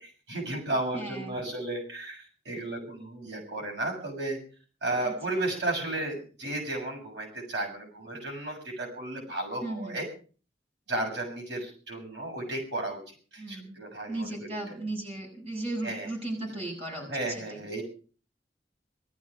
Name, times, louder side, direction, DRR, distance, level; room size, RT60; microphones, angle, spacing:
voice 1, 0.0-4.4 4.8-10.1 10.9-13.0 13.3-14.6 15.8-16.1 17.1-17.8, right 2 dB, 80° right, 1 dB, 6.9 m, -34 dB
voice 2, 0.9-1.4 5.0-5.1 9.6-10.0 13.4-13.8 14.1-17.6, right 2 dB, 35° right, 1 dB, 7.5 m, -36 dB
18.5 x 14.5 x 5.0 m, 0.40 s
head